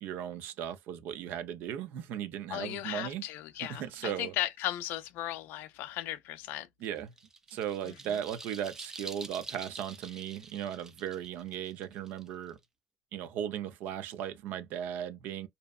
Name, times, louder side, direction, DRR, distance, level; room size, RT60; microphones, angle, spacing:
voice 1, 0.0-3.3 3.7-4.3 6.8-7.1 7.5-12.6 13.1-15.5, right 10 dB, 75° right, 0.4 m, -37 dB
voice 2, 2.5-6.7 7.8-8.2, left 14 dB, 85° left, 0.3 m, -36 dB
sound 1, 6.8-12.6, right 3 dB, 15° right, 0.4 m, -47 dB
2.6 x 2.1 x 2.3 m
cardioid pair, 150°, 3 cm